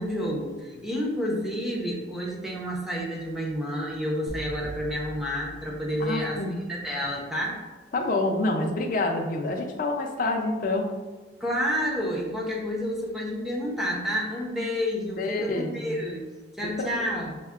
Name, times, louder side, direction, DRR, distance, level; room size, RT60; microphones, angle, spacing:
voice 1, 0.0-6.4 6.7-7.6 11.4-16.3 16.6-17.3, equal, ahead, -4 dB, 0.6 m, -29 dB
sound 1, 4.3-6.5, right 2 dB, 90° right, 0.5 m, -42 dB
voice 2, 6.0-6.6 7.9-10.9 15.2-16.0 16.8-16.9, left 2 dB, 50° left, 2 dB, 0.4 m, -27 dB
5.4 x 2.1 x 2.3 m, 1.3 s
head